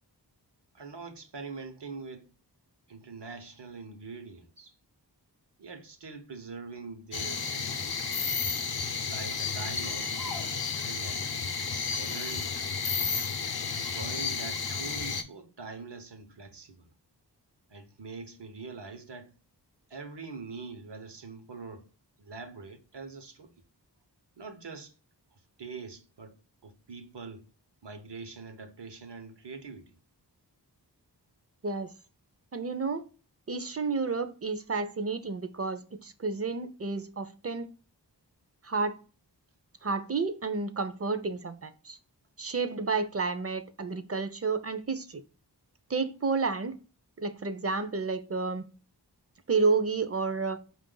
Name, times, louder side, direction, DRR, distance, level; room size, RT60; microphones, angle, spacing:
voice 1, 0.7-2.3 2.9-4.8 5.6-8.1 8.9-11.3 11.9-12.6 13.8-16.9 17.7-19.3 19.9-21.9 22.2-23.5 24.4-24.9 25.3-27.5 27.8-29.9, right 4 dB, 75° right, 0.9 m, -44 dB
sound 1, 7.1-15.2, left 5 dB, 60° left, 0.6 m, -32 dB
voice 2, 32.5-33.0 33.5-37.7 38.6-39.0 39.8-42.0 42.4-45.2 45.9-46.7 47.2-48.6 49.5-50.6, right 4 dB, 35° right, 0.5 m, -30 dB
5.0 x 2.5 x 3.7 m
wide cardioid pair, 50°, 42 cm